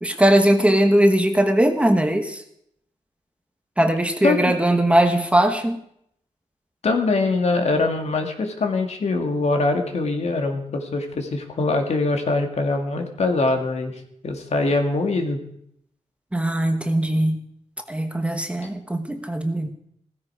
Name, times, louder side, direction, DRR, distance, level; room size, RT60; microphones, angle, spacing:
voice 1, 0.0-2.4 3.8-5.8 16.3-17.4 17.9-19.7, right 1 dB, 10° right, 6 dB, 1.2 m, -19 dB
voice 2, 6.8-15.4, left 3 dB, 60° left, 4 dB, 2.2 m, -23 dB
16.5 x 15.0 x 4.8 m, 0.72 s
wide cardioid pair, 140°, 12 cm